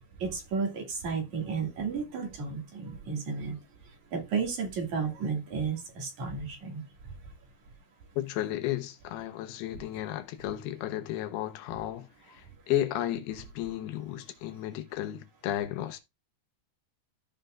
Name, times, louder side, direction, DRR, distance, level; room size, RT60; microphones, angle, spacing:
voice 1, 0.2-3.6 4.1-6.8, right 5 dB, 50° right, 3.3 m, -33 dB
voice 2, 8.2-16.0, left 13 dB, 90° left, 3.0 m, -33 dB
14.0 x 5.7 x 2.5 m
omnidirectional pair, 4.5 m